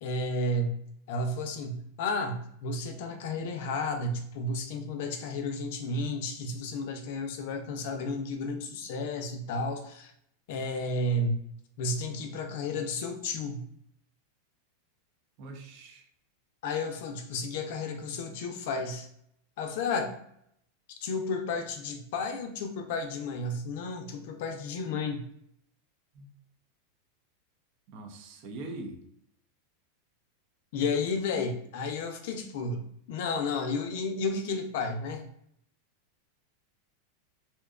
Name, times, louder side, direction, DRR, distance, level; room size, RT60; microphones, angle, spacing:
voice 1, 0.0-0.8 1.1-10.1 10.5-11.4 11.8-13.6 16.6-19.1 19.6-20.1 21.0-25.2 30.7-35.2, left 2 dB, 65° left, 5 dB, 0.5 m, -32 dB
voice 2, 15.4-16.0 26.1-26.3 27.9-29.0, right 2 dB, 50° right, 4 dB, 0.5 m, -42 dB
2.7 x 2.2 x 2.3 m, 0.71 s
supercardioid pair, 140°, 0 cm